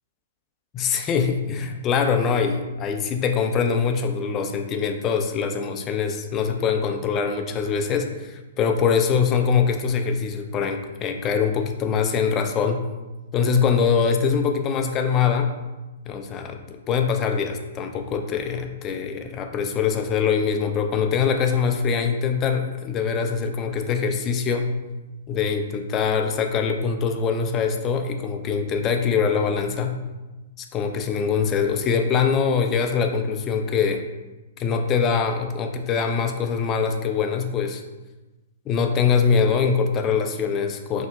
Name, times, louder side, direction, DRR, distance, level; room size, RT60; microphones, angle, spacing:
voice 1, 0.7-12.8 13.3-15.5 16.1-24.7 25.3-30.0 30.7-34.0 34.6-37.8 38.7-41.1, left 6 dB, 25° left, 5 dB, 0.3 m, -23 dB
2.8 x 2.1 x 3.3 m, 1.1 s
hypercardioid pair, 130°, 0 cm